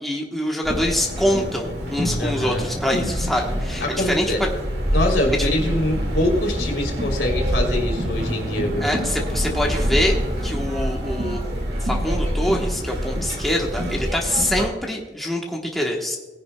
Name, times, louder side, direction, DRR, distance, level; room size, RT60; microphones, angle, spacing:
voice 1, 0.0-4.2 5.4-5.5 8.8-10.2 10.4-11.5 11.8-16.2, equal, ahead, -1 dB, 1.0 m, -25 dB
sound 1, 0.6-14.7, equal, 60° right, 2.0 m, -26 dB
voice 2, 2.2-2.6 3.8-4.4 4.9-8.9, left 1 dB, 75° left, 1 dB, 2.9 m, -24 dB
18.5 x 10.5 x 2.2 m, 1.3 s
head